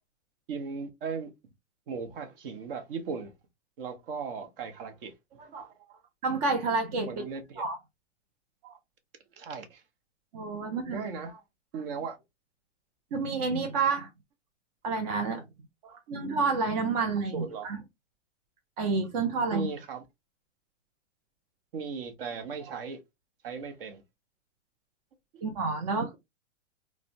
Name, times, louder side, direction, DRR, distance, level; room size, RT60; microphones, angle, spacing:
voice 1, 0.5-1.3 1.9-3.3 3.8-6.0 7.1-7.6 8.6-8.8 9.3-9.8 10.9-11.4 11.7-12.2 15.8-16.0 17.3-17.7 19.5-20.0 21.7-23.0 23.4-24.0 25.3-25.4, right 5 dB, 50° right, 0.8 m, -37 dB
voice 2, 6.2-7.1 7.6-7.8 10.3-11.0 13.1-14.1 14.8-15.4 16.1-17.8 18.8-19.7 25.4-26.2, right 4 dB, 35° right, 0.5 m, -29 dB
3.1 x 2.0 x 2.5 m
hypercardioid pair, 145°, 36 cm